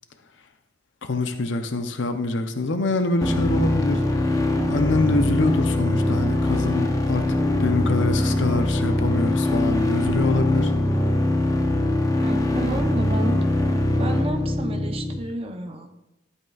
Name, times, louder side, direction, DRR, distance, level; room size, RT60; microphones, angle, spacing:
voice 1, 1.0-10.7, left 2 dB, 70° left, 7 dB, 0.7 m, -25 dB
sound 1, 3.2-15.2, left 1 dB, 20° left, 0.7 m, -22 dB
voice 2, 12.2-13.4 13.9-15.9, right 2 dB, 30° right, 4 dB, 0.8 m, -31 dB
12.0 x 8.2 x 2.4 m, 0.94 s
head